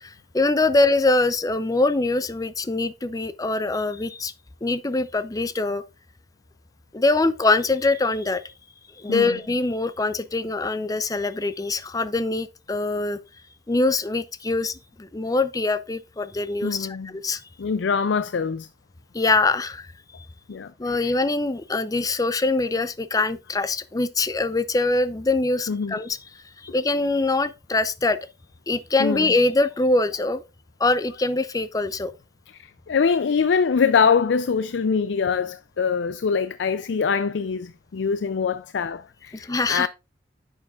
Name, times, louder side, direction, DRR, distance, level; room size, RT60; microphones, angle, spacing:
voice 1, 0.0-4.3 4.6-5.8 6.9-8.4 9.0-13.2 13.7-17.4 19.1-19.9 20.2-20.3 20.8-26.2 26.7-28.2 28.7-30.4 30.8-32.1 39.4-39.9, left 2 dB, 20° left, 0.5 m, -23 dB
voice 2, 9.1-9.4 16.6-17.2 17.6-18.7 20.5-21.1 25.7-26.0 29.0-29.4 32.6-39.9, left 6 dB, 80° left, 0.5 m, -24 dB
11.0 x 7.3 x 2.4 m
head